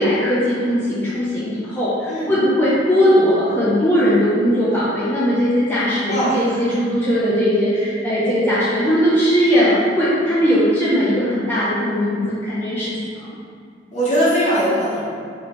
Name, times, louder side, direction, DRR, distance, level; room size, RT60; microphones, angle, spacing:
voice 1, 0.0-13.3, equal, 10° left, -11 dB, 0.7 m, -19 dB
voice 2, 6.1-6.4 9.5-9.8 13.9-15.1, equal, 40° left, -9 dB, 1.5 m, -20 dB
4.5 x 3.2 x 3.5 m, 2.2 s
head